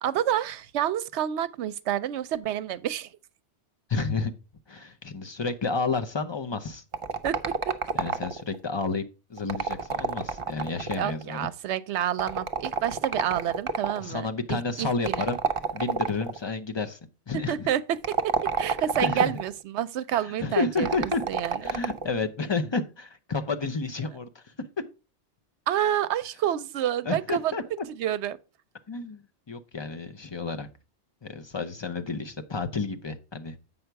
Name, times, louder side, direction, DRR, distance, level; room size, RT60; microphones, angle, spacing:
voice 1, 0.0-3.1 7.2-7.7 10.9-15.3 17.5-17.8 18.1-21.6 25.7-27.5 28.0-28.4, right 11 dB, 75° right, 0.8 m, -29 dB
voice 2, 3.9-4.3 4.7-6.8 7.9-9.0 9.3-11.5 14.0-15.4 15.7-17.0 17.3-17.7 18.9-19.3 20.1-21.2 21.6-24.5 27.0-27.9 28.9-30.7 31.2-33.6, left 4 dB, 30° left, 0.5 m, -31 dB
sound 1, 6.9-8.6 9.4-11.2 12.2-14.0 15.1-16.4 17.9-19.5 20.8-22.1, right 5 dB, 40° right, 0.5 m, -29 dB
7.9 x 5.6 x 4.5 m
omnidirectional pair, 1.2 m